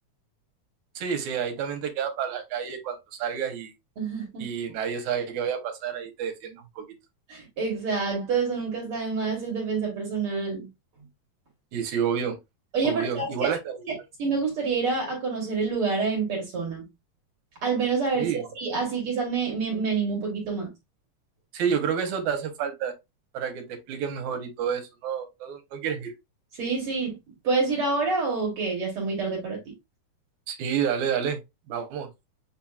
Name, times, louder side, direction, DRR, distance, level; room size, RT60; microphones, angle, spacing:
voice 1, 1.0-3.7 4.4-6.9 11.7-12.4 12.8-13.8 18.2-18.4 21.5-22.9 23.3-26.1 30.5-31.4 31.7-32.1, right 7 dB, 75° right, 2.1 m, -29 dB
voice 2, 4.0-4.4 7.3-10.7 12.7-13.5 14.2-16.9 17.6-20.7 26.6-27.2 27.4-29.6, right 4 dB, 55° right, 2.0 m, -27 dB
7.1 x 2.8 x 2.3 m
omnidirectional pair, 3.6 m